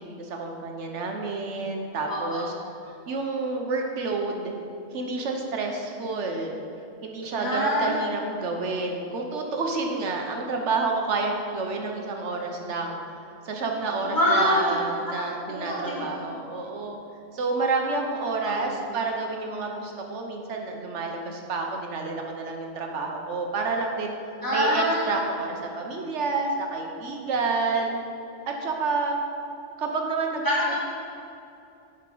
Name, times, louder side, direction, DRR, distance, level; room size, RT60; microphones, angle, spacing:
voice 1, 0.0-2.5 2.9-4.5 4.9-6.5 7.0-13.0 13.4-17.0 17.3-24.2 24.5-28.0 28.5-29.2 29.8-30.4, right 3 dB, 75° right, 2 dB, 1.1 m, -29 dB
voice 2, 2.1-2.4 7.4-8.0 14.0-14.8 15.5-16.2 18.4-18.7 24.4-25.1 30.4-30.7, equal, 15° left, -8 dB, 2.1 m, -25 dB
7.8 x 5.8 x 5.3 m, 2.7 s
omnidirectional pair, 1.2 m